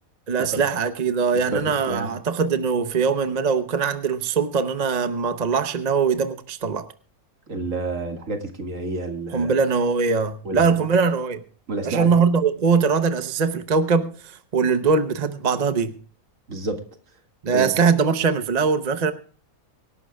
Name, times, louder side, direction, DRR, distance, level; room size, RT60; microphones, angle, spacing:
voice 1, 0.3-6.9 9.3-11.4 11.8-16.0 17.4-19.1, right 5 dB, 35° right, 0.8 m, -22 dB
voice 2, 1.5-2.1 7.5-9.5 10.4-10.6 11.7-12.1 16.5-16.8 17.5-17.7, right 2 dB, 60° right, 2.2 m, -29 dB
24.5 x 11.5 x 2.3 m
omnidirectional pair, 1.5 m